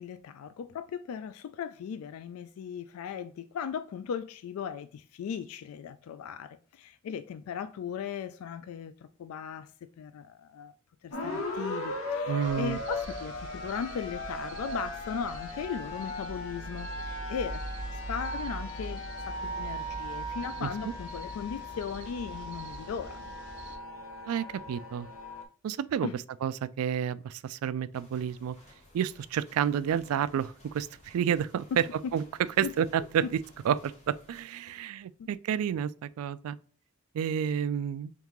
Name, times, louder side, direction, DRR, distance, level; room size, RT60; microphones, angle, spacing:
voice 1, 0.0-8.9 9.2-9.7 10.0-10.7 11.0-17.6 17.9-23.3 26.0-26.1 32.6-32.7 34.7-34.8 35.2-35.3, left 7 dB, 85° left, 0.3 m, -38 dB
sound 1, 11.1-25.4, left 1 dB, 70° left, 0.8 m, -38 dB
voice 2, 12.3-12.8 20.6-20.9 24.3-25.1 25.6-26.1 26.4-28.6 28.9-32.2 32.6-33.4 33.6-36.6 37.1-38.1, right 8 dB, 85° right, 0.3 m, -30 dB
sound 2, 12.4-23.8, right 2 dB, 55° right, 0.8 m, -43 dB
sound 3, 27.9-34.4, left 1 dB, 35° left, 1.2 m, -57 dB
3.6 x 3.6 x 3.0 m
head